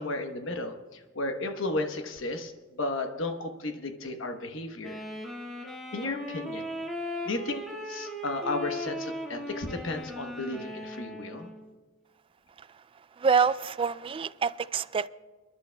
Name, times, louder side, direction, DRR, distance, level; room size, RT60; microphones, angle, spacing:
voice 1, 0.0-5.0 5.9-6.7 7.3-11.5, left 2 dB, 70° left, 1.0 m, -34 dB
Wind instrument woodwind instrument, 4.8-11.7, equal, ahead, 1.8 m, -38 dB
voice 2, 13.2-15.1, right 6 dB, 25° right, 0.3 m, -26 dB
28.5 x 11.0 x 2.3 m
head